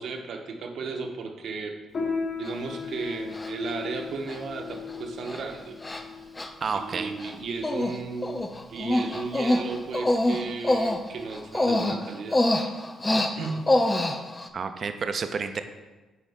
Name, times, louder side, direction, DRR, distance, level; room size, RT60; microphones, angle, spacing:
voice 1, 0.0-1.8 2.4-5.8 6.7-8.4 8.7-12.4 13.4-13.7, right 4 dB, 70° right, 3 dB, 0.9 m, -34 dB
Piano, 1.9-11.9, left 4 dB, 60° left, 1.7 m, -37 dB
Human voice, 2.5-2.6 3.3-3.7 4.3-4.4 4.7-5.0 5.2-5.4 5.8-6.0 6.4-7.3 7.6-8.0 8.2-14.5, left 1 dB, 20° left, 0.5 m, -25 dB
voice 2, 6.6-7.1 14.5-15.6, right 5 dB, 45° right, 9 dB, 0.5 m, -30 dB
8.3 x 4.2 x 3.5 m, 1.2 s
cardioid pair, 90°, 0 cm